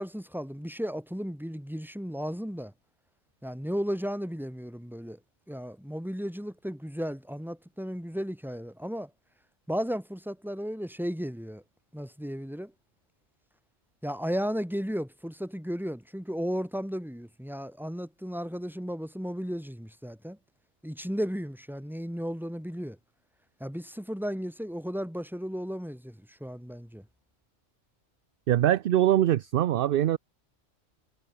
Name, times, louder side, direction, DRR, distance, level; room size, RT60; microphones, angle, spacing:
voice 1, 0.0-2.7 3.4-5.2 5.5-9.1 9.7-11.6 11.9-12.7 14.0-20.4 20.8-23.0 23.6-27.0, equal, ahead, 3.4 m, -34 dB
voice 2, 28.5-30.2, right 12 dB, 60° right, 0.7 m, -23 dB
omnidirectional pair, 1.2 m